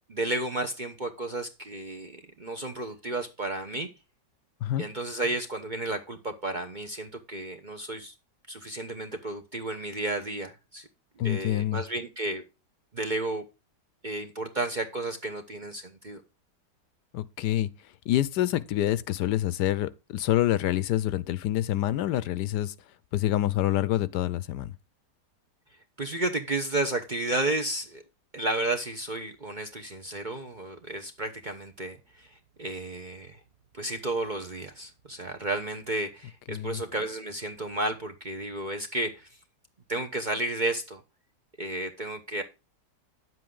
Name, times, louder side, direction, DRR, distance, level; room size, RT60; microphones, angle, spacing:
voice 1, 0.1-3.9 4.8-8.1 8.5-10.9 11.2-12.4 12.9-13.4 14.0-16.2 26.0-28.0 28.3-33.4 33.7-39.3 39.9-41.0 41.6-42.4, right 2 dB, 35° right, 0.8 m, -32 dB
voice 2, 11.2-11.8 17.1-17.7 18.1-22.7 23.1-24.7 36.5-36.8, left 13 dB, 80° left, 1.2 m, -27 dB
9.6 x 7.7 x 3.7 m
omnidirectional pair, 1.8 m